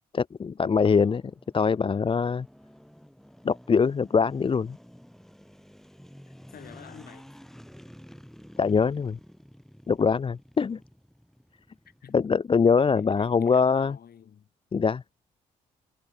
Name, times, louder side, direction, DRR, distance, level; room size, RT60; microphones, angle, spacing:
voice 1, 0.1-1.2 1.5-2.5 3.4-4.8 8.6-9.2 9.9-10.8 12.1-14.0 14.7-15.0, left 5 dB, 30° left, 0.5 m, -23 dB
sound 1, 0.8-12.1, equal, ahead, 3.1 m, -51 dB
voice 2, 6.5-7.3 11.9-12.2 12.8-14.5, left 8 dB, 60° left, 5.7 m, -50 dB
hypercardioid pair, 45°, 18 cm